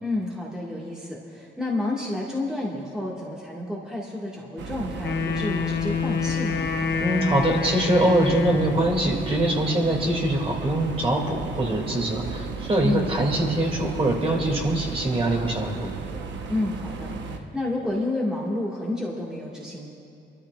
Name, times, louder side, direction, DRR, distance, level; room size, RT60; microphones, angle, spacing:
voice 1, 0.0-6.7 12.8-13.1 16.5-19.9, left 2 dB, 5° right, -5 dB, 1.9 m, -30 dB
sound 1, 4.6-17.4, right 4 dB, 65° right, 1.0 m, -35 dB
Wind instrument woodwind instrument, 5.0-9.0, left 6 dB, 55° left, 1.0 m, -27 dB
voice 2, 7.0-15.9, right 1 dB, 30° right, -1 dB, 2.6 m, -23 dB
24.5 x 13.5 x 2.5 m, 2.5 s
cardioid pair, 90°, 20 cm